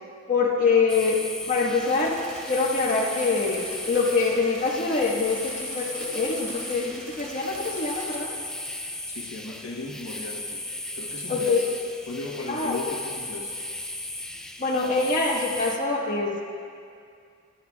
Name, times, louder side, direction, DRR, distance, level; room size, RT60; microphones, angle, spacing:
voice 1, 0.3-2.2 2.5-8.3 11.3-11.7 12.5-12.9 14.6-16.4, left 4 dB, 40° left, -4 dB, 1.6 m, -25 dB
sound 1, 0.9-15.8, left 1 dB, 5° left, 0.4 m, -36 dB
sound 2, 1.7-8.2, right 2 dB, 65° right, 1.4 m, -44 dB
voice 2, 9.1-10.6 10.9-11.7 12.1-13.5, left 2 dB, 90° left, -2 dB, 1.3 m, -36 dB
14.0 x 13.5 x 2.4 m, 2.3 s
head